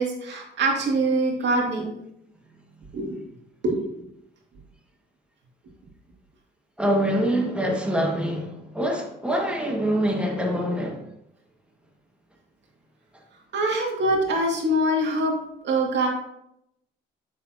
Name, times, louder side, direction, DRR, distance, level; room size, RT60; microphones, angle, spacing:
voice 1, 0.0-1.9 2.9-3.2 3.6-3.8 13.5-15.3 15.6-16.1, right 1 dB, 60° right, 2.5 m, -24 dB
voice 2, 6.8-11.1, equal, 5° right, 1.9 m, -25 dB
7.6 x 6.9 x 2.9 m
cardioid pair, 90°, 20 cm